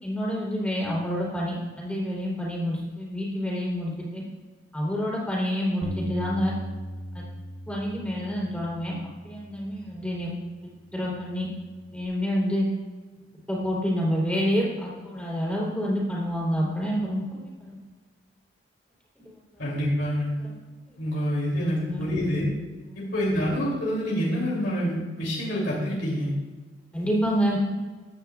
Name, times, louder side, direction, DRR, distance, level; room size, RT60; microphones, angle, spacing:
voice 1, 0.0-4.2 4.7-6.5 7.1-7.2 7.7-9.0 9.2-10.3 10.9-11.5 11.9-12.7 13.5-17.8 20.4-20.5 21.6-22.1 26.9-27.6, equal, 5° left, -5 dB, 3.4 m, -28 dB
Bass guitar, 5.8-10.3 10.9-12.1, equal, 45° left, 1.5 m, -38 dB
voice 2, 19.6-20.3 21.0-22.5 22.9-26.3, equal, 75° left, -5 dB, 3.0 m, -27 dB
15.5 x 10.0 x 2.4 m, 1.3 s
head